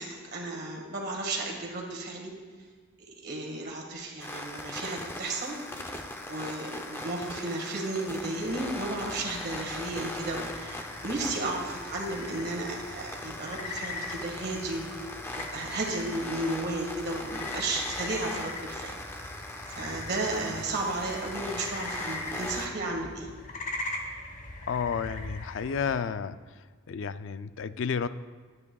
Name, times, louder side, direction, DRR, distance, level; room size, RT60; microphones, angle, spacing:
voice 1, 0.0-2.3 3.2-5.9 6.2-19.0 19.7-23.3, right 2 dB, 50° right, 0 dB, 1.7 m, -34 dB
sound 1, 4.2-22.7, left 1 dB, 10° left, 0.5 m, -40 dB
sound 2, 8.4-26.0, left 2 dB, 35° left, 1.0 m, -41 dB
voice 2, 24.7-26.4 26.9-28.1, left 6 dB, 65° left, 13 dB, 0.4 m, -31 dB
12.0 x 9.5 x 2.3 m, 1.5 s
head